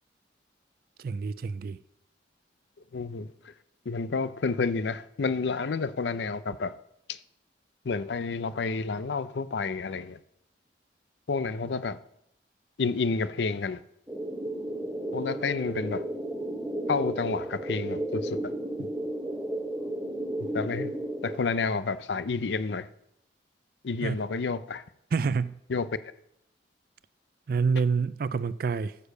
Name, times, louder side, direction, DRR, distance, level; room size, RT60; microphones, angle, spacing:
voice 1, 1.0-1.8 24.0-24.2 25.1-25.6 27.5-29.0, right 5 dB, 55° right, 0.3 m, -27 dB
voice 2, 2.9-3.3 3.9-6.7 7.1-7.2 7.8-10.2 11.3-12.0 12.8-13.8 15.1-16.0 16.9-18.5 18.8-18.9 20.5-20.9 21.2-22.9 23.8-24.8 25.7-25.9, left 4 dB, 80° left, 0.5 m, -30 dB
sound 1, 14.1-21.4, right 1 dB, 10° right, 1.0 m, -33 dB
9.6 x 6.8 x 6.5 m
head